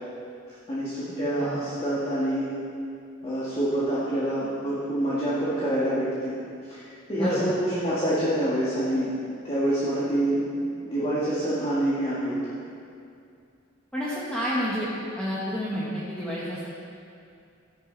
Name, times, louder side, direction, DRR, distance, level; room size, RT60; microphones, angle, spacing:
voice 1, 0.7-2.5 3.2-6.3 6.7-9.1 9.4-12.3, right 1 dB, 30° left, -9 dB, 2.0 m, -26 dB
voice 2, 7.1-7.5 13.9-14.9 15.2-16.7, equal, 5° left, -9 dB, 1.5 m, -29 dB
14.0 x 10.5 x 4.1 m, 2.4 s
head